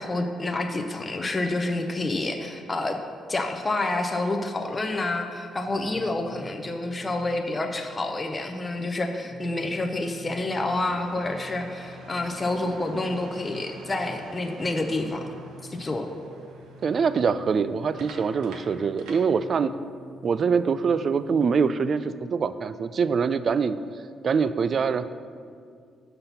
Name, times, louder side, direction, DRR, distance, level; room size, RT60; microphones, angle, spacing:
voice 1, 0.0-3.0 3.3-15.3 15.7-16.1, left 2 dB, 25° left, 3 dB, 0.6 m, -28 dB
sound 1, 5.7-7.8 8.7-21.7, left 1 dB, 45° left, 1.0 m, -48 dB
sound 2, 10.6-19.7, right 3 dB, 90° right, 0.9 m, -48 dB
voice 2, 16.8-19.7 20.2-23.8 24.2-25.0, right 5 dB, 50° right, 14 dB, 0.3 m, -24 dB
5.7 x 5.7 x 6.8 m, 2.2 s
cardioid pair, 90°, 0 cm